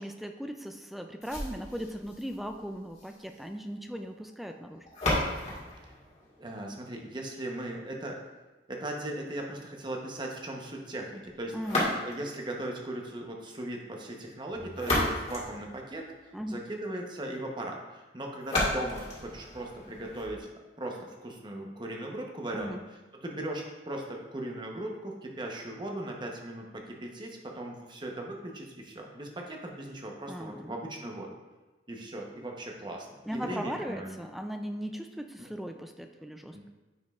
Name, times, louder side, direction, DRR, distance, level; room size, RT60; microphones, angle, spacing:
voice 1, 0.0-4.9 11.5-11.9 16.3-16.6 22.5-22.8 30.3-30.8 33.2-36.6, equal, ahead, 5 dB, 0.3 m, -38 dB
sound 1, 1.2-7.2 11.6-12.4 14.5-16.4 18.4-20.4, left 1 dB, 40° left, 1.8 m, -34 dB
voice 2, 6.4-8.2 8.7-11.6 11.8-20.5 20.8-22.8 23.1-31.3 31.9-34.2 35.4-35.5 36.5-36.7, right 1 dB, 25° right, 1 dB, 0.9 m, -38 dB
9.2 x 5.2 x 2.4 m, 1.2 s
head